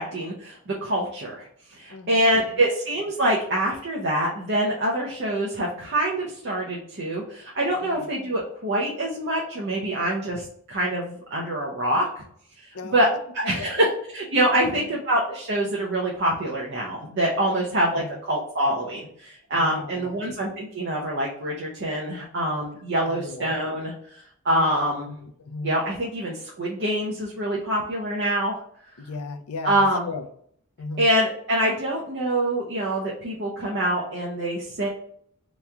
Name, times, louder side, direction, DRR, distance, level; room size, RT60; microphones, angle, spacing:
voice 1, 0.0-12.2 12.7-13.1 13.3-23.9 24.4-25.1 25.6-28.6 29.6-30.1 31.0-34.9, right 1 dB, 50° right, -3 dB, 0.6 m, -25 dB
voice 2, 1.9-2.3 7.8-8.1 12.7-12.9 14.5-14.8 17.6-18.1 19.5-20.3 23.1-23.5 24.5-25.7 29.0-30.2 30.8-31.0, left 3 dB, 85° left, 7 dB, 0.5 m, -37 dB
3.0 x 2.2 x 3.6 m, 0.63 s
head